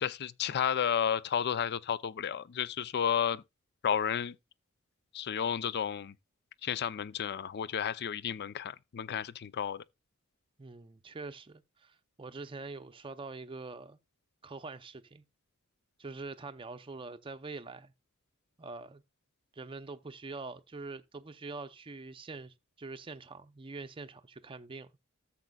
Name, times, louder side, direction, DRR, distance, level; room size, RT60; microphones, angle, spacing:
voice 1, 0.0-3.4 3.8-4.4 5.1-6.1 6.6-9.8, left 8 dB, 50° left, 0.4 m, -32 dB
voice 2, 10.6-14.0 14.4-15.2 16.0-17.9 18.6-19.0 19.5-24.9, right 3 dB, 25° right, 0.6 m, -44 dB
13.5 x 7.2 x 2.3 m
head